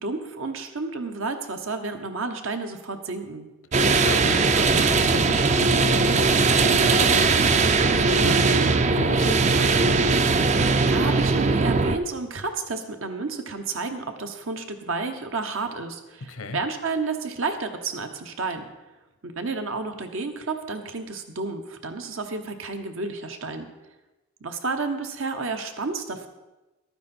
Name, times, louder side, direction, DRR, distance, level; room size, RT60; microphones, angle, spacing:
voice 1, 0.0-3.5 10.7-18.7 19.2-23.7 24.4-26.3, right 3 dB, 75° right, 6 dB, 1.1 m, -31 dB
sound 1, 3.7-12.0, right 4 dB, 35° right, 0.5 m, -20 dB
voice 2, 3.8-9.9 16.3-16.6, left 2 dB, 85° left, 9 dB, 1.0 m, -34 dB
12.0 x 9.4 x 4.4 m, 1.1 s
head